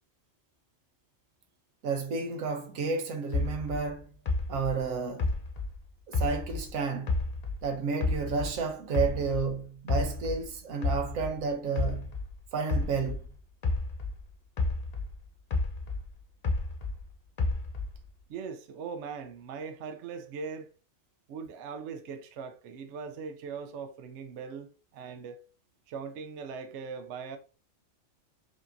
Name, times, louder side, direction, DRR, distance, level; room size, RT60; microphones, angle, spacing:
voice 1, 1.8-4.1 4.5-5.3 6.1-7.2 7.6-12.1 12.5-13.2, right 5 dB, 85° right, 1.2 m, -31 dB
sound 1, 3.3-6.7 7.1-9.5 9.9-14.2 14.6-17.0 17.4-18.1, left 3 dB, 50° left, 0.5 m, -31 dB
voice 2, 18.3-20.7 21.3-25.5 25.9-27.4, right 5 dB, 65° right, 0.8 m, -40 dB
5.0 x 2.8 x 2.6 m
omnidirectional pair, 1.4 m